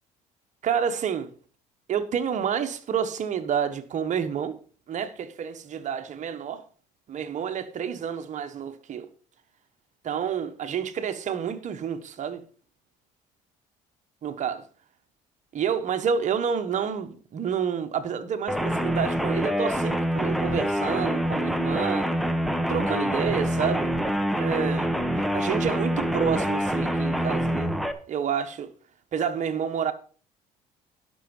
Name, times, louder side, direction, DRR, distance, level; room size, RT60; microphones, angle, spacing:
voice 1, 0.6-1.3 1.9-4.6 4.9-6.6 7.1-9.1 10.0-12.4 14.2-14.6 15.5-22.1 22.7-23.9 24.4-27.7 28.1-28.7 29.1-29.9, right 7 dB, 50° right, 1.4 m, -29 dB
sound 1, 18.5-27.9, equal, ahead, 1.1 m, -26 dB
11.0 x 6.4 x 5.4 m
supercardioid pair, 85°, 16 cm